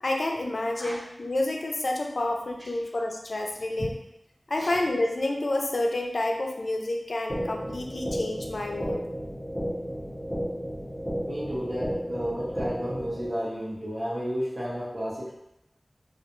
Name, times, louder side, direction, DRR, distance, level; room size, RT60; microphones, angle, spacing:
voice 1, 0.0-3.9 4.5-9.0, left 2 dB, 85° left, 1 dB, 0.3 m, -29 dB
sound 1, 7.3-13.3, equal, ahead, 0.4 m, -33 dB
voice 2, 11.2-15.3, equal, 50° right, -7 dB, 0.9 m, -32 dB
2.3 x 2.2 x 2.9 m, 0.86 s
wide cardioid pair, 60°, 0 cm